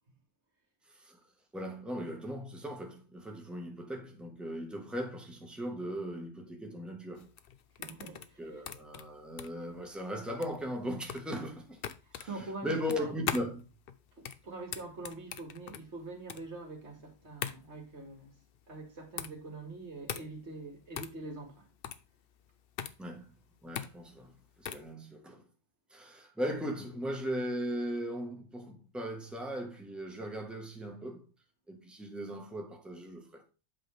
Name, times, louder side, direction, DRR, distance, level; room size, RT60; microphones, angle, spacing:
voice 1, 0.9-1.2 1.5-7.3 8.4-11.8 12.1-13.6 23.0-23.3 23.6-25.4 25.9-31.3 31.7-33.4, equal, ahead, 1.3 m, -38 dB
sound 1, 7.2-24.9, left 8 dB, 60° left, 0.8 m, -42 dB
voice 2, 7.8-8.6 12.1-13.1 14.1-18.3 18.7-21.7, right 3 dB, 85° right, 2.3 m, -44 dB
8.2 x 5.7 x 3.4 m
omnidirectional pair, 1.1 m